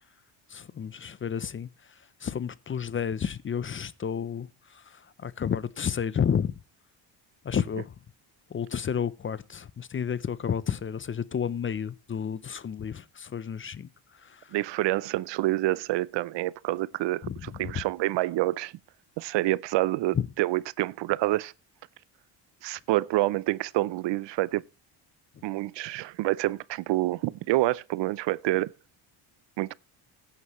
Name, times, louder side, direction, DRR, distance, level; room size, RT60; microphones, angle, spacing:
voice 1, 0.5-1.7 2.2-6.5 7.4-7.9 8.5-13.9 14.2-14.5 17.2-17.8 20.1-20.3, left 7 dB, 25° left, 0.5 m, -31 dB
voice 2, 14.5-18.7 19.2-21.5 22.6-24.6 25.4-28.7 29.6-29.7, right 17 dB, 65° right, 0.6 m, -27 dB
16.5 x 9.6 x 3.1 m
cardioid pair, 95°, 46 cm